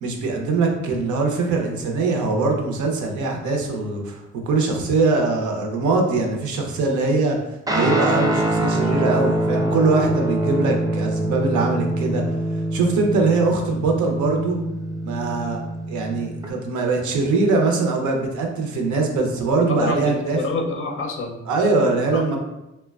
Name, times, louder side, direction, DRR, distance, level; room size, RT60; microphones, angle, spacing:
voice 1, 0.0-7.4 7.7-12.4 12.7-14.6 15.0-15.6 15.9-20.4 21.5-22.4, right 3 dB, 75° right, 2 dB, 0.6 m, -22 dB
Guitar, 7.7-16.5, right 1 dB, 15° right, 0.4 m, -24 dB
voice 2, 19.7-21.4 22.1-22.4, left 2 dB, 45° left, 2 dB, 0.5 m, -26 dB
2.9 x 2.1 x 2.3 m, 0.94 s
cardioid pair, 90°, 30 cm